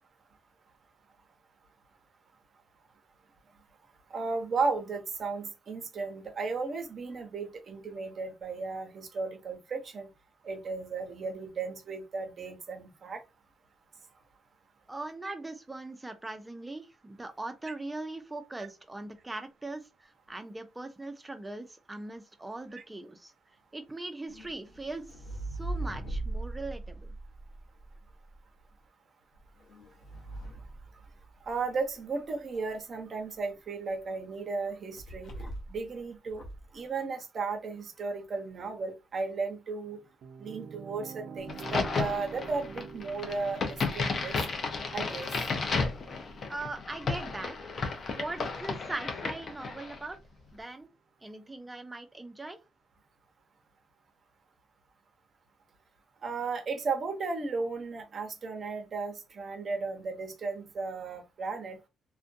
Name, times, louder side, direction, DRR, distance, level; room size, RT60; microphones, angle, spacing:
voice 1, 4.1-10.1 10.4-13.2 22.7-22.8 31.5-35.3 35.7-36.4 36.7-40.0 40.4-44.4 44.9-45.3 56.2-61.8, right 4 dB, 45° right, 0.7 m, -35 dB
voice 2, 14.9-23.3 23.7-25.2 25.6-27.1 46.5-47.6 48.2-50.2 50.5-50.9 51.2-52.6, right 2 dB, 15° right, 0.5 m, -40 dB
sound 1, 24.3-28.4 29.3-31.7 35.0-35.9 36.2-36.7, right 2 dB, 70° left, 0.8 m, -40 dB
sound 2, 39.8-49.0, right 6 dB, 70° right, 0.4 m, -48 dB
Crack, 41.5-50.0, left 4 dB, 50° left, 0.6 m, -33 dB
2.5 x 2.2 x 2.5 m
cardioid pair, 90°, 0 cm